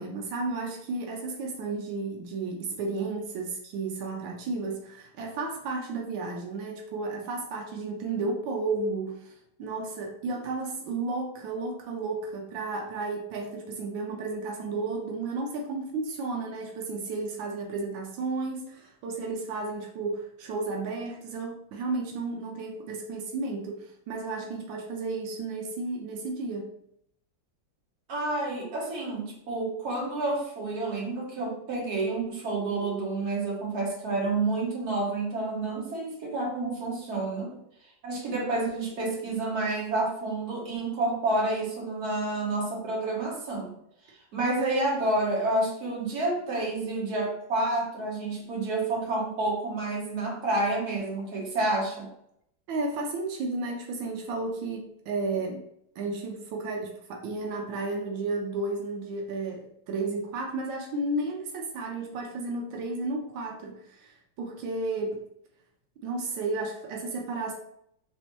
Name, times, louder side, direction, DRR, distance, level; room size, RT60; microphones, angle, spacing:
voice 1, 0.0-9.3 9.6-26.7 52.7-55.6 56.0-65.2 66.0-67.5, right 3 dB, 85° right, 1 dB, 1.5 m, -33 dB
voice 2, 28.1-37.6 38.0-43.7 44.3-52.1, right 2 dB, 55° right, -3 dB, 1.7 m, -29 dB
3.6 x 3.4 x 4.0 m, 0.74 s
omnidirectional pair, 2.0 m